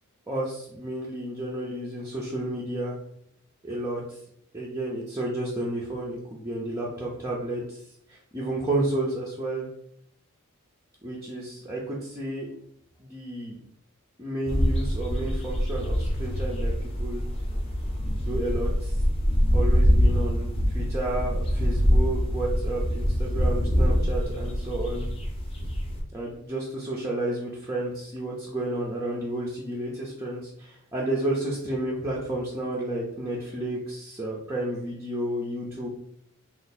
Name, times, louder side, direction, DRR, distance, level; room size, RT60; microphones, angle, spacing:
voice 1, 0.3-3.0 3.6-4.2 4.5-7.8 8.1-9.7 11.0-12.5 13.0-13.6 14.2-17.2 18.1-19.0 19.5-25.1 26.1-35.9, right 1 dB, 15° right, -5 dB, 0.5 m, -31 dB
sound 1, 14.5-26.0, equal, 25° left, 0.7 m, -24 dB
3.2 x 2.4 x 4.1 m, 0.71 s
head